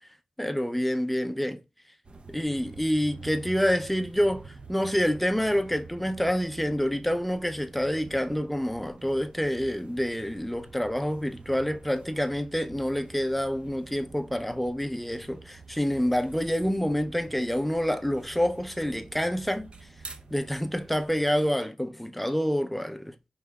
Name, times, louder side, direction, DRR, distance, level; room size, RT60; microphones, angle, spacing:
voice 1, 0.4-1.6 2.3-19.7 20.3-23.1, equal, 5° left, 0.5 m, -27 dB
sound 1, 2.0-21.5, right 4 dB, 50° right, 0.6 m, -48 dB
4.7 x 3.2 x 2.3 m
cardioid pair, 55°, 2 cm